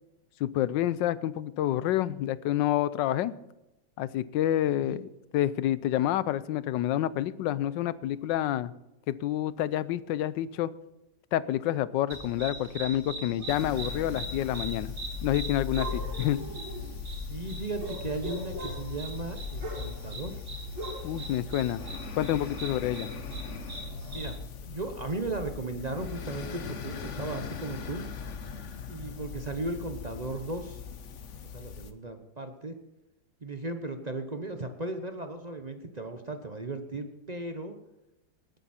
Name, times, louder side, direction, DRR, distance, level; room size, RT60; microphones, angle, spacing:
voice 1, 0.4-3.3 4.0-5.0 5.3-8.7 9.1-10.7 11.3-14.9 15.2-16.4 21.0-21.8 22.2-23.1, left 12 dB, 80° left, 17 dB, 1.3 m, -28 dB
sound 1, 12.1-24.3, right 2 dB, 70° right, 4.2 m, -40 dB
sound 2, 13.5-31.9, left 6 dB, 50° left, 1.0 m, -40 dB
voice 2, 17.3-20.3 24.1-24.4 24.6-28.1 28.9-30.8 31.5-32.8 33.4-37.8, right 2 dB, 35° right, 6 dB, 0.7 m, -36 dB
19.0 x 9.2 x 4.3 m, 0.95 s
omnidirectional pair, 2.0 m